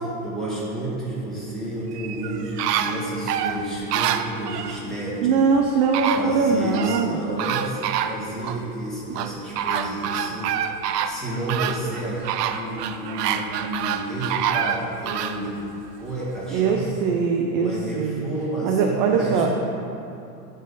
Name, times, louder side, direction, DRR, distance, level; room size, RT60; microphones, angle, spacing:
voice 1, 0.2-5.4 6.1-10.5 11.0-16.9 17.5-19.5, right 1 dB, ahead, -8 dB, 1.7 m, -31 dB
sound 1, 1.9-4.8 5.6-5.7 5.9-7.1 7.4-8.6 9.1-15.4 15.9-16.0, right 9 dB, 85° right, 0.6 m, -27 dB
voice 2, 5.2-7.2 16.5-18.2 18.6-19.5, right 5 dB, 35° right, 1 dB, 0.4 m, -21 dB
11.5 x 3.9 x 4.0 m, 2.7 s
supercardioid pair, 140°, 47 cm